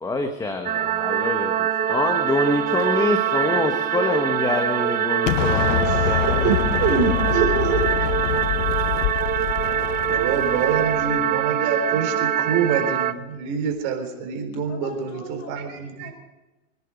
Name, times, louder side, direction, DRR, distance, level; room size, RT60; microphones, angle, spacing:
voice 1, 0.0-6.5, left 2 dB, 10° left, 5 dB, 1.3 m, -26 dB
sound 1, 0.7-13.1, right 9 dB, 25° right, 0.8 m, -23 dB
Explosion, 5.3-11.3, left 13 dB, 80° left, 0.9 m, -26 dB
voice 2, 5.8-6.2 6.4-8.1 10.1-16.1, right 6 dB, 55° right, 5 dB, 4.1 m, -25 dB
voice 3, 6.8-8.0 9.7-10.8 14.7-16.1, left 4 dB, 45° left, 1 dB, 6.7 m, -42 dB
25.0 x 10.5 x 5.2 m, 1.1 s
supercardioid pair, 135°, 37 cm